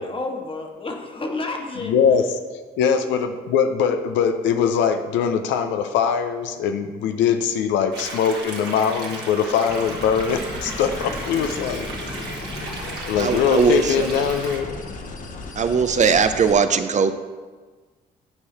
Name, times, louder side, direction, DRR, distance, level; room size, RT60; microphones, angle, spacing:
voice 1, 0.0-2.0 2.8-3.2 11.3-12.4, left 2 dB, 30° left, 3 dB, 1.4 m, -32 dB
voice 2, 1.8-2.3 2.8-11.9 13.1-14.8, left 7 dB, 75° left, 7 dB, 0.6 m, -21 dB
sound 1, 7.9-14.6, right 3 dB, 60° right, 1.8 m, -35 dB
sound 2, 9.7-16.5, left 3 dB, 45° left, 1.1 m, -35 dB
voice 3, 13.2-14.1 15.6-17.1, right 6 dB, 40° right, 9 dB, 0.5 m, -19 dB
9.6 x 4.7 x 4.2 m, 1.4 s
supercardioid pair, 60°, 19 cm